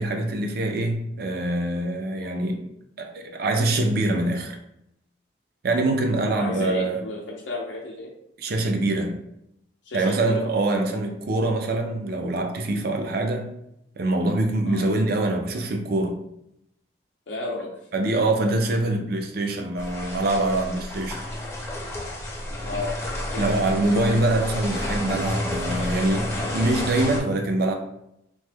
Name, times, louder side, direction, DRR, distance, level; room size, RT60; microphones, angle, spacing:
voice 1, 0.0-2.6 3.0-4.6 5.6-7.0 8.4-9.2 9.9-13.5 14.0-16.2 17.9-21.2 23.4-27.7, right 2 dB, 55° right, 4 dB, 0.4 m, -24 dB
voice 2, 6.3-8.1 9.8-10.4 14.6-14.8 17.3-17.7 22.6-23.5, left 2 dB, 80° left, -3 dB, 0.5 m, -32 dB
sound 1, 19.8-27.2, left 1 dB, 15° left, 0.5 m, -30 dB
3.1 x 2.1 x 3.3 m, 0.81 s
head